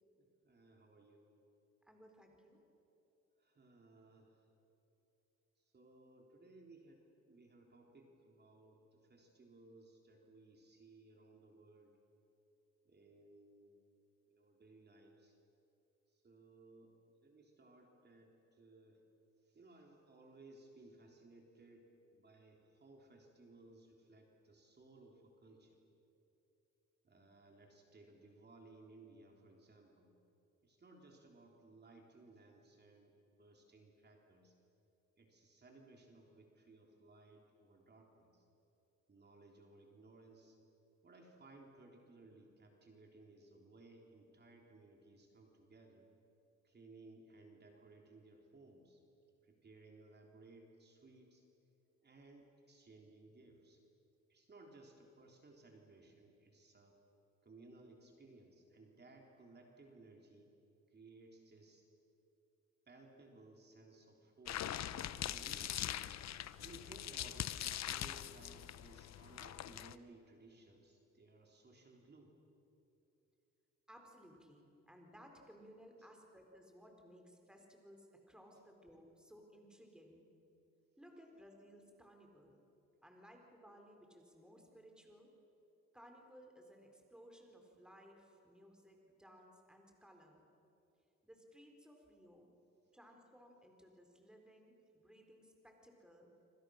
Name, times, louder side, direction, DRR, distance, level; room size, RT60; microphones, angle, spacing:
voice 1, 0.2-1.3 3.4-4.5 5.6-12.0 12.9-13.8 14.3-15.4 16.1-16.9 17.2-19.0 19.4-25.8 27.0-30.1 30.6-34.6 35.2-38.5 39.1-40.6 41.0-46.1 46.6-49.0 49.4-51.4 52.0-53.8 54.3-57.0 57.4-60.6 60.9-61.9 62.9-65.9 66.6-72.3 76.0-76.1, right 2 dB, 35° right, 1 dB, 3.6 m, -61 dB
voice 2, 1.9-2.6 73.9-80.3 81.0-82.6 83.0-85.3 85.9-90.5 91.2-92.5 92.9-96.3, equal, 5° right, 2 dB, 4.2 m, -60 dB
sound 1, 64.5-69.9, left 11 dB, 60° left, 0.8 m, -42 dB
27.0 x 26.0 x 6.5 m, 3.0 s
cardioid pair, 90°, 30 cm